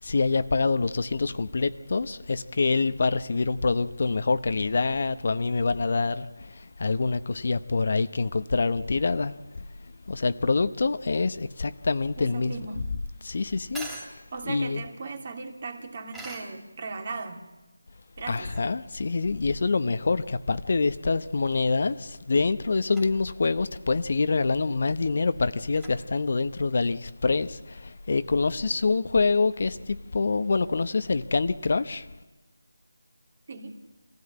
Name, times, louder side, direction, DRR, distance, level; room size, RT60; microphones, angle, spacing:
voice 1, 0.0-9.4 10.1-12.5 13.2-14.2 14.4-14.8 18.3-32.1, left 4 dB, 50° left, 12 dB, 0.8 m, -26 dB
sound 1, 11.6-27.0, right 1 dB, 5° right, 2.6 m, -48 dB
voice 2, 12.2-12.8 14.3-17.5 18.2-18.5 33.5-33.7, right 4 dB, 40° right, 5 dB, 2.6 m, -37 dB
25.5 x 16.0 x 9.9 m, 1.1 s
figure-of-eight pair, 165°, 0 cm